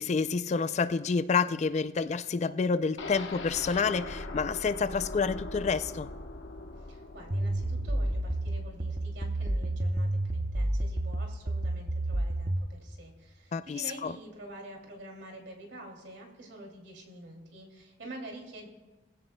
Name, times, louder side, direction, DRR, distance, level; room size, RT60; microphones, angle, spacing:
voice 1, 0.0-6.1 13.5-14.2, left 5 dB, 35° left, 0.3 m, -29 dB
sound 1, 3.0-10.8 11.2-11.3 11.7-11.8, left 2 dB, 80° left, 1.1 m, -42 dB
voice 2, 6.9-18.7, right 1 dB, 70° right, 2.7 m, -47 dB
sound 2, 7.3-12.7, right 1 dB, 35° right, 0.8 m, -30 dB
21.5 x 16.0 x 2.2 m
head